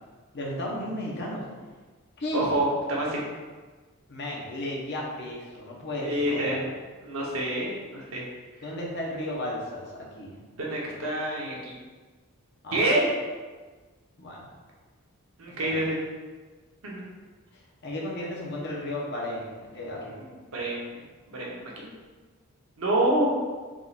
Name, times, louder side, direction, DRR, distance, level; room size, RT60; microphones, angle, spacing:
voice 1, 0.3-1.4 2.2-2.4 4.1-6.7 8.6-10.3 12.6-12.8 14.2-14.5 15.5-15.8 17.8-20.2, left 1 dB, 50° left, -3 dB, 0.8 m, -34 dB
voice 2, 2.3-3.2 6.0-6.6 7.0-8.2 10.6-11.7 12.7-13.1 15.4-16.0 16.8-17.0 20.5-20.9 21.3-21.9 22.8-23.3, right 1 dB, 65° right, -3 dB, 0.9 m, -27 dB
4.0 x 3.7 x 2.4 m, 1.4 s
head